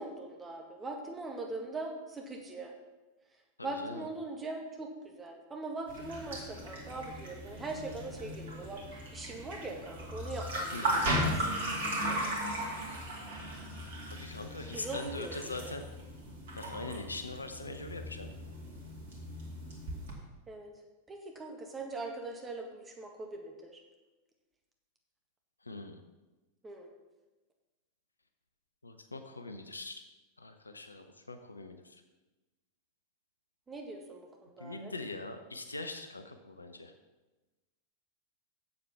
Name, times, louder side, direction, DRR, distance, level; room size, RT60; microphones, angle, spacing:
voice 1, 0.0-2.7 3.6-12.3 14.7-15.3 15.6-15.7 20.5-20.7 21.1-23.8 26.6-26.9 33.7-34.9, right 2 dB, 15° right, 2 dB, 1.7 m, -41 dB
voice 2, 3.6-4.1 10.7-11.1 14.0-15.9 16.5-18.3 25.6-26.0 28.8-30.0 30.4-32.0 34.6-36.9, left 2 dB, 80° left, 7 dB, 0.8 m, -42 dB
sound 1, 5.9-20.1, equal, 60° right, 2.4 m, -37 dB
7.7 x 7.7 x 5.8 m, 1.1 s
figure-of-eight pair, 90°, 0 cm